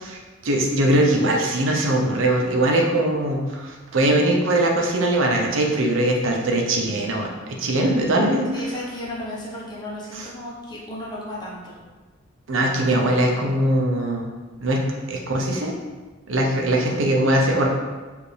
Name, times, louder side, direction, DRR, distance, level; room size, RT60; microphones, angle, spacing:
voice 1, 0.0-8.5 10.1-10.2 12.5-14.3 14.6-15.7 16.3-17.7, right 1 dB, 75° right, 0 dB, 0.6 m, -21 dB
voice 2, 8.5-11.8, left 1 dB, 20° left, -5 dB, 0.8 m, -34 dB
4.7 x 2.6 x 3.3 m, 1.3 s
head